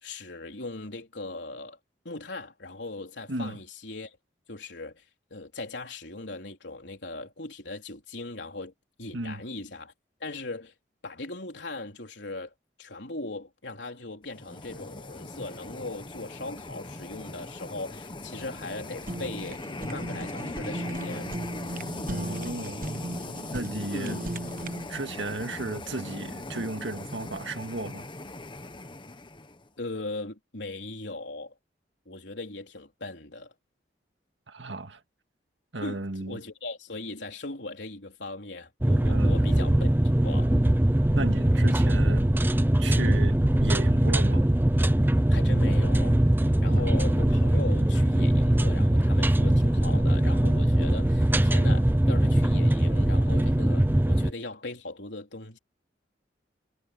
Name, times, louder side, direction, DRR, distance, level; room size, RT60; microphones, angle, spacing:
voice 1, 0.0-1.8 2.0-4.2 4.5-5.0 5.3-8.7 9.0-9.9 10.2-10.7 11.0-12.5 12.8-19.6 19.9-21.3 23.9-24.3 29.8-31.5 32.1-33.5 35.8-40.5 45.3-55.6, left 2 dB, 75° left, 3.8 m, -39 dB
voice 2, 9.1-9.4 22.1-22.9 23.5-24.2 24.9-28.1 34.5-35.0 35.7-36.4 39.1-39.4 41.1-42.3 42.8-44.5 46.7-46.8, right 2 dB, 90° right, 1.9 m, -34 dB
sound 1, 14.3-29.7, left 2 dB, 25° left, 1.1 m, -39 dB
Fire, 18.6-24.9, right 1 dB, 50° right, 1.1 m, -37 dB
sound 2, 38.8-54.3, right 1 dB, 10° right, 0.5 m, -22 dB
head